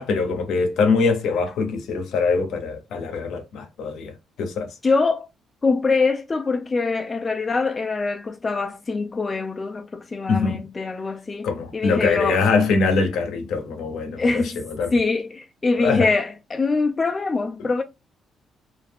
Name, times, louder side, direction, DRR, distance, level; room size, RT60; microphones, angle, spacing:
voice 1, 0.0-4.7 10.3-10.6 11.4-15.0 15.7-16.1, left 4 dB, 80° left, 0.7 m, -23 dB
voice 2, 4.8-5.3 5.6-12.4 14.2-14.6 14.9-17.8, left 3 dB, 30° left, 0.3 m, -24 dB
2.4 x 2.1 x 3.2 m
cardioid pair, 90°, 0 cm